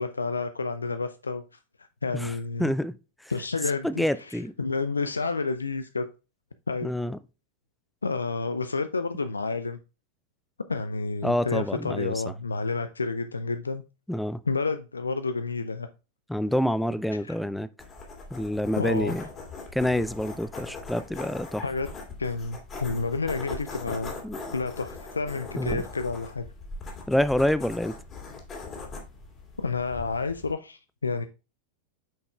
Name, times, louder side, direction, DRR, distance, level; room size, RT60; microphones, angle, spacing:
voice 1, 0.0-1.4 2.0-2.7 3.3-6.1 6.7-6.9 8.0-9.8 10.7-13.8 14.5-15.9 17.2-17.4 18.8-19.2 21.6-21.9 22.2-24.1 24.5-26.4 29.6-31.3, left 4 dB, 75° left, 0.4 m, -30 dB
voice 2, 2.6-2.9 3.2-3.3 3.8-4.5 6.8-7.2 11.2-12.3 14.1-14.4 16.3-17.7 18.3-19.3 19.7-21.6 24.2-24.4 25.6-25.8 27.1-28.0, left 1 dB, 5° left, 0.4 m, -27 dB
sound 1, 17.8-30.5, left 3 dB, 25° left, 2.3 m, -40 dB
8.6 x 5.8 x 2.3 m
figure-of-eight pair, 90°, 0 cm